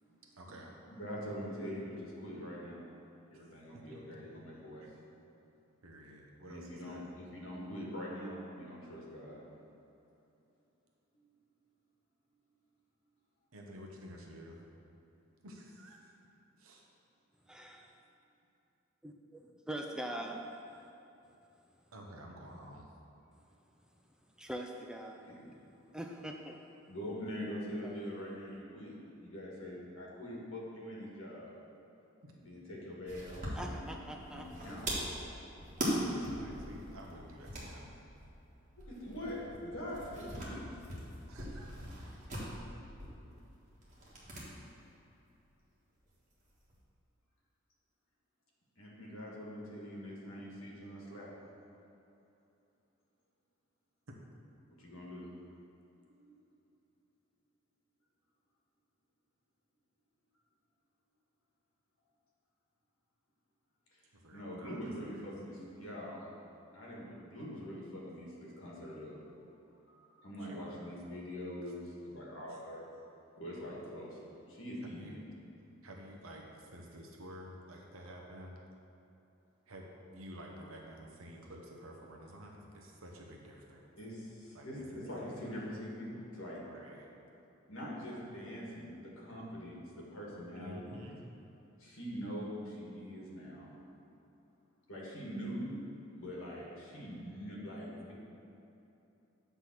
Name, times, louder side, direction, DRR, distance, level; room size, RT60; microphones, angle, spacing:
voice 1, 0.1-0.7 3.3-3.4 3.9-4.0 4.3-4.4 4.8-5.0 5.8-7.1 13.5-14.6 15.4-16.1 16.6-16.9 21.9-22.9 32.2-32.3 35.6-37.9 41.3-41.7 42.0-42.2 54.1-54.2 64.1-65.3 70.4-71.0 71.6-71.7 72.5-72.6 74.9-75.2 75.8-78.6 79.7-83.9 84.5-85.3 86.6-87.1 90.5-91.2, equal, 85° right, 0 dB, 1.0 m, -51 dB
voice 2, 0.9-2.9 3.3-4.9 6.4-9.4 11.1-11.2 25.3-25.6 26.9-31.5 32.3-34.9 38.8-40.7 48.8-51.3 54.8-55.3 56.1-56.3 64.3-66.3 66.7-69.2 69.9-72.9 73.4-75.2 84.0-86.6 87.7-91.0 91.8-93.8 94.9-95.7 96.2-98.1, equal, 70° left, -4 dB, 1.6 m, -44 dB
voice 3, 17.5-17.9 19.0-19.1 19.7-20.5 24.4-25.3 25.9-26.6 27.8-28.0 33.6-34.9 35.2-35.5, right 1 dB, 5° right, 2 dB, 0.3 m, -43 dB
sound 1, 33.1-44.5 44.7-44.8 46.1-46.8, equal, 35° right, 1.5 m, -41 dB
8.1 x 3.5 x 5.9 m, 2.9 s
head